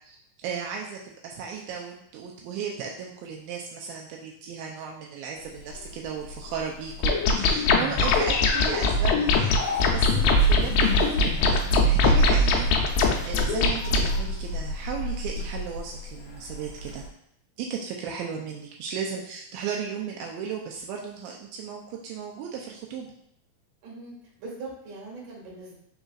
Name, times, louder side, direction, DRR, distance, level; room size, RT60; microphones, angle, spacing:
voice 1, 0.0-13.0 13.3-17.0 17.6-23.1, right 6 dB, 85° right, 0 dB, 2.3 m, -35 dB
Zipper (clothing), 5.4-17.1, right 1 dB, 65° left, 1.7 m, -33 dB
sound 1, 7.0-14.1, left 2 dB, 80° left, 2.1 m, -21 dB
voice 2, 23.8-25.8, right 3 dB, 55° right, -4 dB, 2.3 m, -41 dB
5.3 x 3.9 x 2.4 m, 0.73 s
omnidirectional pair, 4.2 m